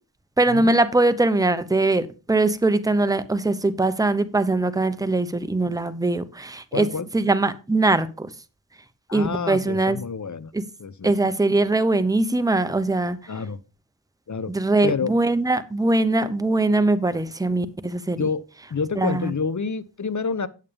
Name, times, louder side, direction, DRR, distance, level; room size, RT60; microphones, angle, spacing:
voice 1, 0.4-6.9 7.1-8.3 9.1-10.0 10.5-10.6 11.0-13.2 14.5-18.2 18.9-19.3, right 2 dB, 10° right, 12 dB, 0.8 m, -21 dB
voice 2, 6.7-7.1 9.1-10.5 10.8-11.1 13.3-13.6 14.3-14.5 14.8-15.1 18.2-18.4 18.7-20.5, left 5 dB, 40° left, 15 dB, 0.8 m, -28 dB
9.1 x 8.3 x 3.4 m, 0.32 s
cardioid pair, 50°, 44 cm